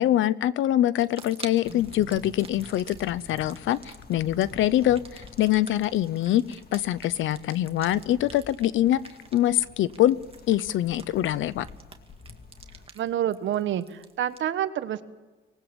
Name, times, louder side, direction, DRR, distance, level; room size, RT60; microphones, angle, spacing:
voice 1, 0.0-9.0 9.3-10.2 10.5-11.7, left 13 dB, 80° left, 18 dB, 0.8 m, -24 dB
sound 1, 1.0-14.4, right 4 dB, 30° right, 2.1 m, -49 dB
sound 2, 1.6-12.9, left 4 dB, 50° left, 2.2 m, -48 dB
voice 2, 12.9-15.0, right 11 dB, 70° right, 12 dB, 1.3 m, -28 dB
24.0 x 19.5 x 7.1 m, 1.2 s
cardioid pair, 90°, 20 cm